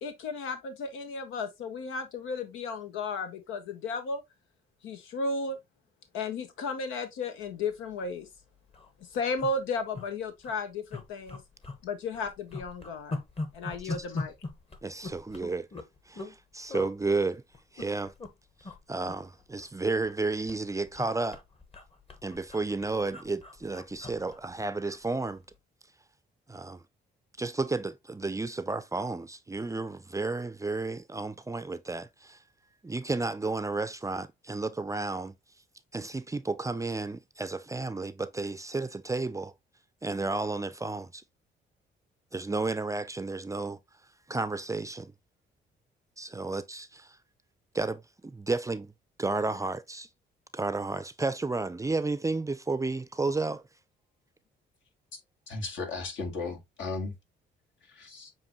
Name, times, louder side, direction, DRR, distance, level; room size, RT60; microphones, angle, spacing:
voice 1, 0.0-4.2 4.8-5.6 6.1-8.3 9.0-11.4 11.8-13.2 13.5-14.3, left 3 dB, 90° left, 0.8 m, -34 dB
sound 1, 7.9-8.1 8.4-8.5 8.7-8.9 9.4-10.1 10.4-10.6 10.9-11.8 12.1-16.4 16.7-16.9 17.5-18.3 18.6-18.8 19.1-20.2 20.5-25.0 25.4-25.6, left 2 dB, 30° left, 1.1 m, -40 dB
voice 2, 14.8-15.7 16.1-17.4 17.7-18.1 18.9-21.4 22.2-25.4 26.5-26.8 27.4-32.4 32.8-35.3 35.9-39.5 40.0-41.2 42.3-43.8 44.3-45.1 46.2-47.1 47.7-48.9 49.2-50.1 50.5-53.6, right 3 dB, 15° right, 0.4 m, -32 dB
voice 3, 55.5-57.1 57.9-58.3, left 3 dB, 70° left, 1.8 m, -35 dB
7.2 x 2.6 x 2.8 m
cardioid pair, 90°, 20 cm